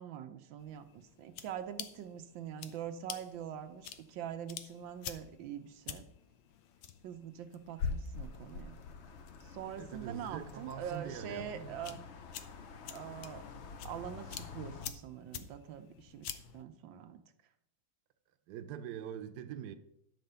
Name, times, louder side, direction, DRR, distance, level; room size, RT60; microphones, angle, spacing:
voice 1, 0.0-6.0 7.0-8.8 9.4-12.1 12.9-13.4 13.8-16.3 16.5-17.2, right 9 dB, 90° right, 1.5 m, -44 dB
sound 1, 0.6-16.6, left 6 dB, 80° left, 1.4 m, -47 dB
sound 2, 8.1-14.9, left 5 dB, 60° left, 0.7 m, -50 dB
voice 2, 9.8-12.0 18.5-19.7, right 9 dB, 70° right, 1.2 m, -44 dB
10.5 x 4.2 x 6.7 m
omnidirectional pair, 2.0 m